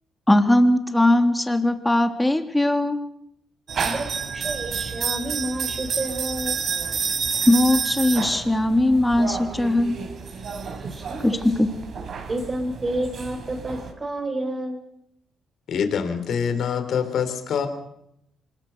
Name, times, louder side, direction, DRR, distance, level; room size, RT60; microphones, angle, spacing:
voice 1, 0.3-3.0 7.5-10.0 11.2-11.7, left 1 dB, 10° left, 6 dB, 3.2 m, -19 dB
sound 1, 3.7-13.9, right 6 dB, 55° right, 4.1 m, -30 dB
voice 2, 3.8-6.6 10.8-11.6 12.3-14.9, right 1 dB, 30° right, 1 dB, 4.3 m, -30 dB
voice 3, 15.7-17.7, left 7 dB, 65° left, 9 dB, 3.7 m, -25 dB
26.0 x 20.5 x 6.7 m, 0.78 s
hypercardioid pair, 50°, 0 cm